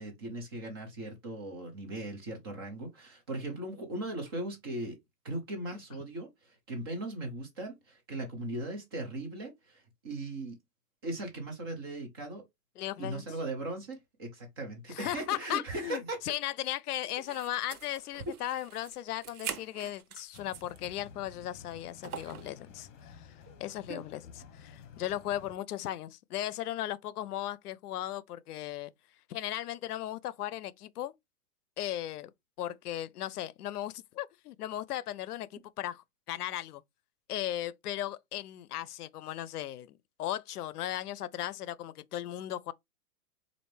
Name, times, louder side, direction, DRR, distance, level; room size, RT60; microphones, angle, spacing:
voice 1, 0.0-5.0 5.2-10.6 11.0-12.4 13.0-16.2 23.9-24.0, right 2 dB, 20° right, 0.4 m, -38 dB
voice 2, 12.8-13.3 14.9-23.3 23.6-24.2 24.5-28.9 29.3-31.1 31.8-32.3 32.6-36.8 37.3-42.7, left 13 dB, 85° left, 0.5 m, -37 dB
sound 1, 17.2-20.9 21.3-21.4 22.0-22.5, right 9 dB, 75° right, 0.9 m, -43 dB
sound 2, 20.3-25.6, left 6 dB, 55° left, 1.1 m, -52 dB
4.3 x 2.5 x 3.2 m
hypercardioid pair, 150°, 44 cm